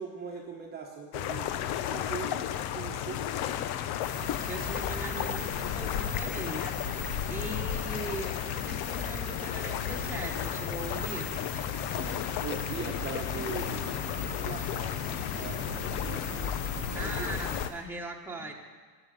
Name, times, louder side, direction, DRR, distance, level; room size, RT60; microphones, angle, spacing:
voice 1, 0.0-1.5 1.9-3.2 12.4-14.0 14.4-17.4, right 5 dB, 20° right, -1 dB, 1.2 m, -41 dB
sound 1, 1.1-17.7, left 10 dB, 55° left, 0.8 m, -34 dB
sound 2, 4.0-17.7, left 3 dB, 40° left, 2.3 m, -39 dB
voice 2, 4.5-6.8 7.3-11.4 16.9-18.5, right 1 dB, 5° right, -1 dB, 1.4 m, -40 dB
13.0 x 7.3 x 8.8 m, 1.5 s
supercardioid pair, 140°, 47 cm